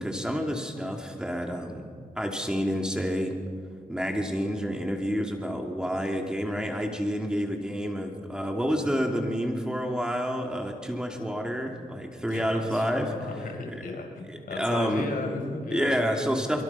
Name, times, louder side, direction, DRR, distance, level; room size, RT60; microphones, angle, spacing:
voice 1, 0.0-1.8 2.2-3.3 3.9-13.1 14.3-15.0 15.7-16.6, equal, 5° right, 2 dB, 2.6 m, -29 dB
voice 2, 12.3-12.9 13.2-16.0, left 3 dB, 75° left, 2 dB, 4.6 m, -35 dB
24.0 x 23.5 x 5.8 m, 2.1 s
wide cardioid pair, 105°, 14 cm